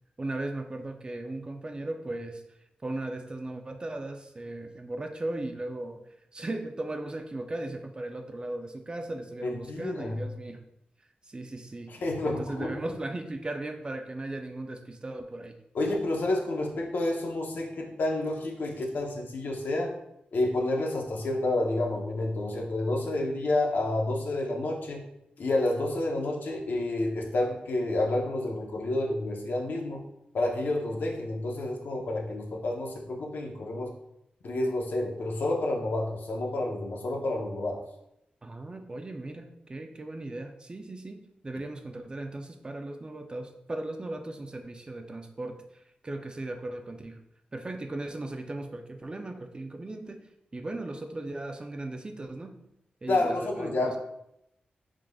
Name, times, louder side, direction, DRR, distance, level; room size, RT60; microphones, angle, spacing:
voice 1, 0.2-10.6 11.2-15.6 38.4-47.2 47.5-52.6 53.0-54.0, right 2 dB, 30° right, 6 dB, 0.4 m, -37 dB
voice 2, 9.4-10.2 12.0-12.8 15.7-19.9 20.3-25.0 25.4-30.0 30.3-33.9 34.4-37.8 53.1-54.0, left 2 dB, 75° left, 1 dB, 0.8 m, -29 dB
4.8 x 3.6 x 2.3 m, 0.80 s
wide cardioid pair, 90°, 3 cm